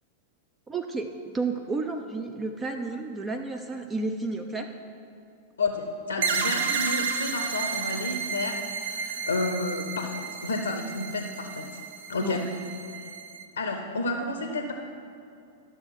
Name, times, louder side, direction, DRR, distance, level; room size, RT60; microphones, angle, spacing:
voice 1, 0.7-4.7 12.2-12.5, right 3 dB, 20° right, 5 dB, 0.5 m, -32 dB
voice 2, 5.6-11.8 12.1-12.4 13.6-14.7, left 2 dB, 75° left, 4 dB, 0.7 m, -31 dB
sound 1, 6.2-13.4, right 5 dB, 60° right, 0.8 m, -32 dB
12.5 x 6.4 x 4.7 m, 2.5 s
figure-of-eight pair, 95°, 0 cm